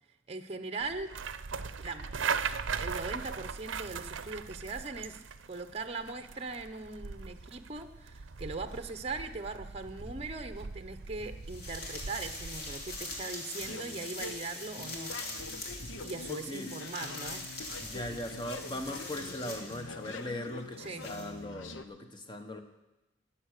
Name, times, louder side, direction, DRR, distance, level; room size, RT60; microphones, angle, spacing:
voice 1, 0.3-1.2 1.8-2.1 2.8-15.1 16.0-17.5 20.8-21.0, right 3 dB, 30° right, 8 dB, 0.7 m, -40 dB
sound 1, 0.8-13.1, right 5 dB, 75° right, 0.6 m, -39 dB
sound 2, 8.7-8.8 10.0-10.2 11.1-20.2 20.5-21.3, left 2 dB, 55° left, 2.8 m, -43 dB
sound 3, 13.6-21.8, left 3 dB, 75° left, 0.8 m, -45 dB
voice 2, 16.3-16.7 17.8-22.6, left 1 dB, 25° left, 6 dB, 1.3 m, -39 dB
19.0 x 7.5 x 6.5 m, 1.0 s
head